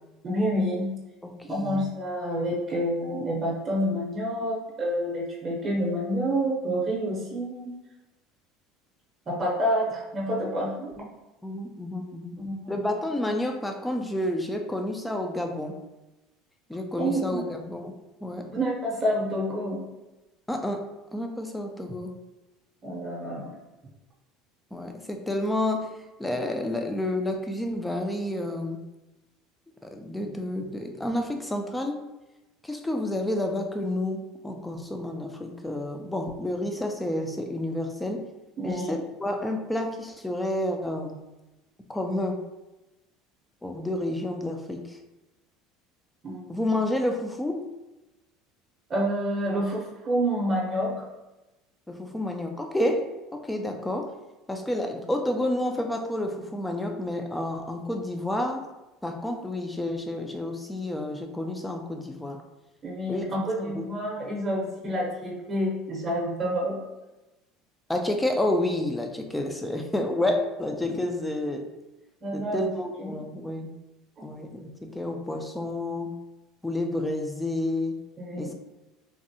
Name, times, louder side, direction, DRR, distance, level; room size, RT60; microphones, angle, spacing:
voice 1, 0.2-1.0 1.5-7.7 9.3-10.9 12.4-12.8 17.0-17.4 18.5-19.9 22.8-23.5 38.6-38.9 46.2-46.6 48.9-51.1 62.8-66.8 72.2-73.1 74.2-74.3 78.2-78.5, equal, 30° right, -3 dB, 0.7 m, -28 dB
voice 2, 1.2-1.9 11.0-11.1 11.4-12.4 12.7-15.7 16.7-18.5 20.5-22.2 24.7-28.8 29.8-32.0 32.6-38.3 38.6-41.2 41.9-42.4 43.6-45.0 46.5-47.7 51.9-54.1 54.5-58.7 59.0-62.4 63.1-63.2 63.6-63.9 67.9-71.7 72.3-73.8 74.2-76.2 76.6-78.0 78.4-78.5, left 1 dB, 5° left, 3 dB, 0.3 m, -30 dB
3.5 x 2.0 x 2.7 m, 1.0 s
supercardioid pair, 125°, 0 cm